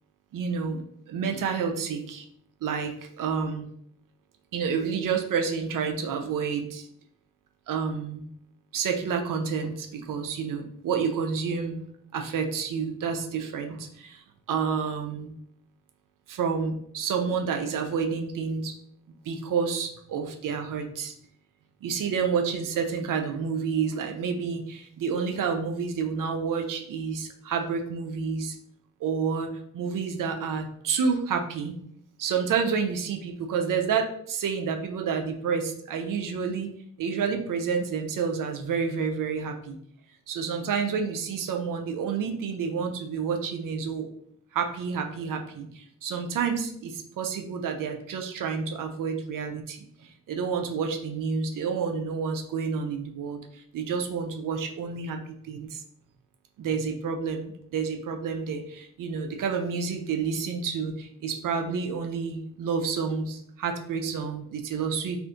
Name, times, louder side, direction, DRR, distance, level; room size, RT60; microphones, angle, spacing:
voice 1, 0.3-0.8 1.1-2.3 2.6-3.6 4.5-6.9 7.7-8.2 8.7-11.8 12.1-15.3 16.3-18.7 19.2-21.1 21.8-28.5 29.0-29.5 29.7-31.7 32.2-36.7 37.0-39.8 40.3-44.1 44.5-55.8 56.6-65.2, right 6 dB, 80° right, 5 dB, 0.5 m, -29 dB
2.6 x 2.5 x 3.6 m, 0.67 s
cardioid pair, 65°, 32 cm